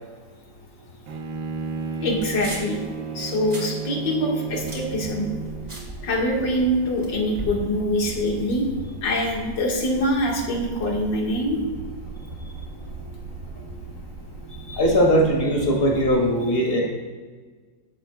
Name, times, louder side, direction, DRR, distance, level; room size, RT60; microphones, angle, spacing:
Bowed string instrument, 1.1-5.8, right 5 dB, 85° right, 1.6 m, -33 dB
voice 1, 2.0-2.8 3.1-5.3 6.0-8.7 9.0-11.6 14.7-14.8, equal, 70° left, -1 dB, 2.4 m, -24 dB
sound 1, 2.2-2.8 3.2-3.7 4.1-6.6 7.0-7.6, right 1 dB, 30° right, 2.5 m, -38 dB
sound 2, 4.6-16.1, right 3 dB, 50° right, 1.4 m, -39 dB
voice 2, 5.7-6.1 14.7-16.9, equal, 30° left, -1 dB, 2.1 m, -20 dB
20.0 x 7.4 x 2.3 m, 1.4 s
omnidirectional pair, 2.0 m